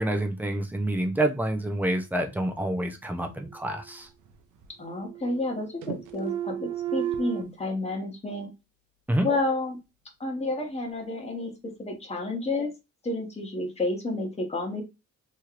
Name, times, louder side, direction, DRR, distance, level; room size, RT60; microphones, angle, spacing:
voice 1, 0.0-4.1 9.1-9.3, right 1 dB, 5° right, 0.5 m, -27 dB
sound 1, 3.3-4.3 4.6-5.6 5.8-7.4, right 11 dB, 75° right, 0.7 m, -34 dB
voice 2, 4.8-8.5 9.2-9.8 10.2-12.7 13.0-14.8, left 2 dB, 20° left, 1.0 m, -30 dB
3.1 x 3.0 x 2.4 m
cardioid pair, 150°, 30 cm